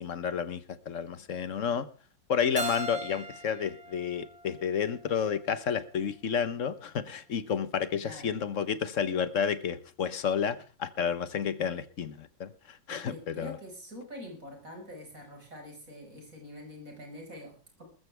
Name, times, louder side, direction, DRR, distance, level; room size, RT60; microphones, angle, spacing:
voice 1, 0.0-1.9 2.3-13.6, left 7 dB, 50° left, 14 dB, 1.2 m, -31 dB
Keyboard (musical), 2.6-5.4, right 1 dB, 20° right, 2.4 m, -39 dB
voice 2, 8.0-8.4 12.9-17.8, left 1 dB, 45° right, 2 dB, 5.8 m, -45 dB
20.5 x 14.0 x 3.4 m, 0.36 s
omnidirectional pair, 2.0 m